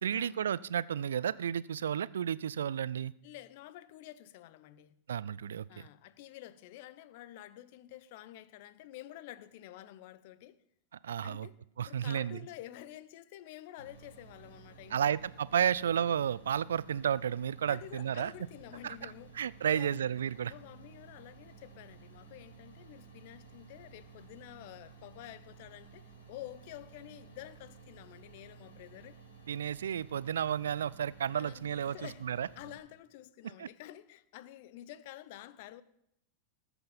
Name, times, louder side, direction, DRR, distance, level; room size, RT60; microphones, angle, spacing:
voice 1, 0.0-3.1 5.1-5.7 11.0-11.5 11.8-12.5 14.9-18.3 18.8-20.5 29.5-32.0 32.2-32.5 33.6-33.7, right 9 dB, 65° right, 0.4 m, -32 dB
voice 2, 3.2-5.0 5.7-10.6 11.2-11.6 11.9-15.2 17.7-19.3 19.6-20.0 20.5-29.2 31.4-35.8, left 14 dB, 50° left, 0.8 m, -50 dB
sound 1, 13.8-32.8, right 5 dB, 75° left, 5.0 m, -55 dB
19.0 x 8.1 x 5.3 m
figure-of-eight pair, 90°, 0 cm